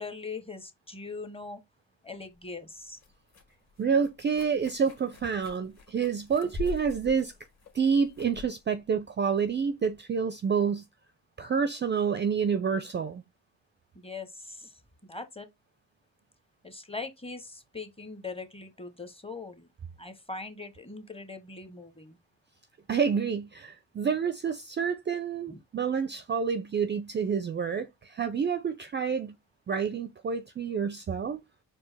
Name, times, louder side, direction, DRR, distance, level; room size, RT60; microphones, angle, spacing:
voice 1, 0.0-1.6 2.0-3.0 13.9-14.8 15.1-15.5 16.6-19.7 20.0-22.2 25.5-25.6, left 4 dB, 15° left, 0.8 m, -41 dB
sound 1, 2.2-10.0, left 6 dB, 40° left, 1.4 m, -45 dB
voice 2, 3.8-7.3 7.7-10.9 11.4-13.2 22.9-29.3 29.7-31.4, right 6 dB, 25° right, 0.4 m, -28 dB
4.5 x 2.5 x 3.3 m
supercardioid pair, 60°, 42 cm